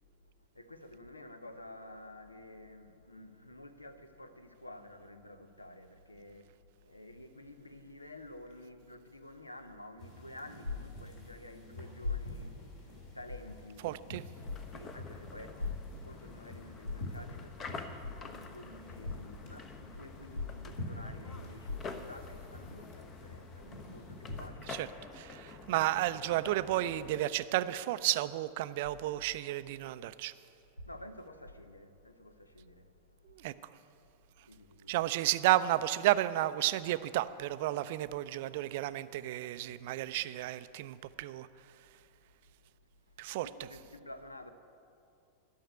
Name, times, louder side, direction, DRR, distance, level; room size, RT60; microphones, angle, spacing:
voice 1, 0.2-14.0 14.5-24.8 25.5-25.9 30.8-33.4 34.4-34.9 43.1-44.5, left 2 dB, 85° left, 0.8 m, -46 dB
sound 1, 10.0-24.5, left 1 dB, 45° left, 3.2 m, -48 dB
voice 2, 13.8-14.2 24.7-24.9 25.1-30.3 33.4-33.5 34.9-41.5 43.2-43.5, right 15 dB, 50° right, 0.4 m, -32 dB
sound 2, 14.3-27.2, left 4 dB, 25° left, 0.9 m, -48 dB
12.0 x 6.6 x 9.3 m
figure-of-eight pair, 90°, 0 cm